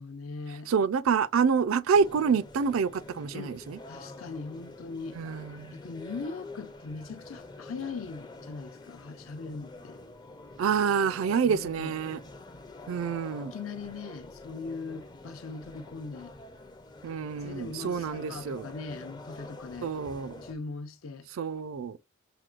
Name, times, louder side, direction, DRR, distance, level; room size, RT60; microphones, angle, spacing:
voice 1, 0.0-0.7 3.3-3.6 3.9-5.2 5.7-10.0 11.4-12.0 13.5-16.3 17.4-19.9 20.4-21.3, left 4 dB, 70° left, 0.6 m, -40 dB
voice 2, 0.7-3.8 5.2-5.8 10.6-12.2 12.9-13.5 17.0-18.6 19.8-20.3 21.4-22.0, right 6 dB, 70° right, 0.4 m, -27 dB
sound 1, 1.9-20.5, left 2 dB, 20° left, 0.5 m, -47 dB
5.9 x 2.2 x 2.4 m
head